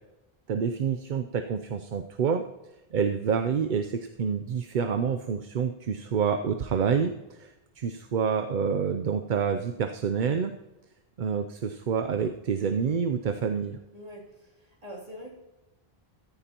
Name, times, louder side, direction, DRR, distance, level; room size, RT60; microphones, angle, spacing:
voice 1, 0.5-2.4 2.9-7.5 7.8-10.5 11.2-13.8, right 6 dB, 55° right, 7 dB, 0.7 m, -27 dB
voice 2, 13.9-15.3, equal, 35° right, -4 dB, 3.0 m, -44 dB
14.5 x 14.0 x 2.9 m, 1.1 s
omnidirectional pair, 1.1 m